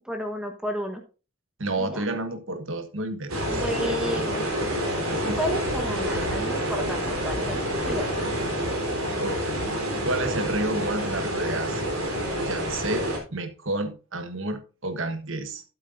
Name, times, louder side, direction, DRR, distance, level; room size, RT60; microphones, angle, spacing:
voice 1, 0.1-1.0 1.8-2.0 3.5-8.1, equal, 5° right, 1.1 m, -33 dB
voice 2, 1.6-3.6 5.1-5.4 9.1-9.7 10.0-11.8 12.4-15.6, right 2 dB, 65° right, 1.3 m, -31 dB
sound 1, 3.3-13.2, equal, 90° right, 3.5 m, -28 dB
12.0 x 8.3 x 2.6 m
head